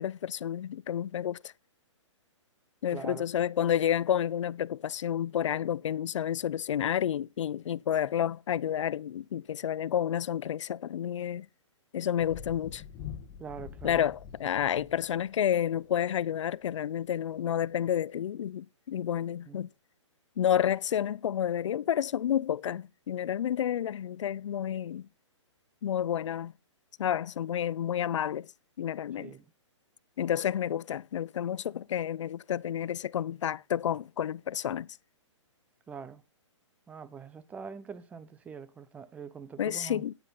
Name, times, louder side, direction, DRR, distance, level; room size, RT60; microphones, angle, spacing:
voice 1, 0.0-1.5 2.8-11.5 11.9-12.8 13.8-19.7 20.4-25.1 25.8-26.5 27.0-28.5 28.8-29.3 30.2-34.9 39.6-40.1, left 10 dB, 75° left, 0.4 m, -30 dB
voice 2, 2.9-3.2 13.4-14.0 19.5-19.6 29.2-29.4 35.9-36.2 36.9-40.0, right 6 dB, 10° right, 0.5 m, -43 dB
Thunder, 12.2-16.1 17.4-17.5, left 8 dB, 25° left, 1.9 m, -45 dB
9.7 x 9.5 x 3.9 m
hypercardioid pair, 150°, 16 cm